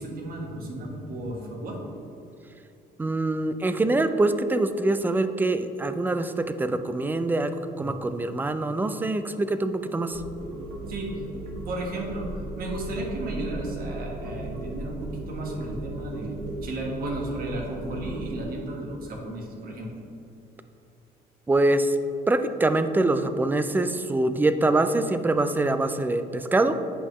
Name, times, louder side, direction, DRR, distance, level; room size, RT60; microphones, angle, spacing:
voice 1, 0.0-1.8 10.9-11.1 11.7-19.9, right 1 dB, 60° right, 0 dB, 1.5 m, -34 dB
voice 2, 3.0-10.2 21.5-22.0 22.3-26.7, right 2 dB, 10° right, 10 dB, 0.4 m, -24 dB
sound 1, 10.1-18.4, right 2 dB, 80° right, 1.2 m, -36 dB
8.4 x 5.5 x 3.2 m, 2.7 s
cardioid pair, 110°, 17 cm